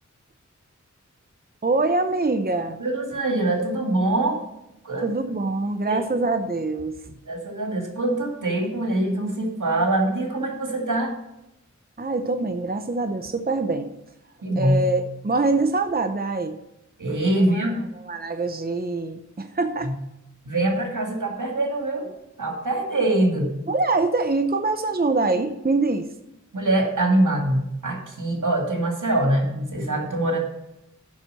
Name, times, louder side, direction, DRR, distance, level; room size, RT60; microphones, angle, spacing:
voice 1, 1.6-2.8 5.0-7.2 12.0-13.9 14.6-16.6 17.3-17.7 18.1-19.9 23.7-26.1, right 3 dB, 30° right, 7 dB, 0.7 m, -24 dB
voice 2, 2.8-4.4 4.8-5.1 5.9-6.0 7.3-11.2 14.4-14.9 17.0-17.8 19.8-19.9 20.4-22.1 22.4-23.6 26.5-30.4, right 1 dB, 85° right, 1 dB, 2.2 m, -23 dB
7.3 x 6.0 x 6.7 m, 0.88 s
wide cardioid pair, 55°, 30 cm